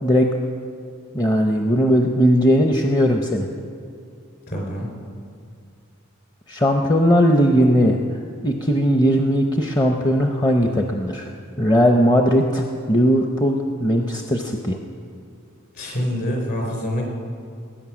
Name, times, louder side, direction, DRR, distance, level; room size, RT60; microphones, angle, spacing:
voice 1, 1.1-3.5 6.5-8.0 8.4-11.3 11.6-14.8, equal, 20° left, 3 dB, 0.7 m, -18 dB
voice 2, 4.5-4.9 15.7-17.0, equal, 50° left, 0 dB, 4.6 m, -26 dB
19.0 x 9.4 x 6.2 m, 2.4 s
head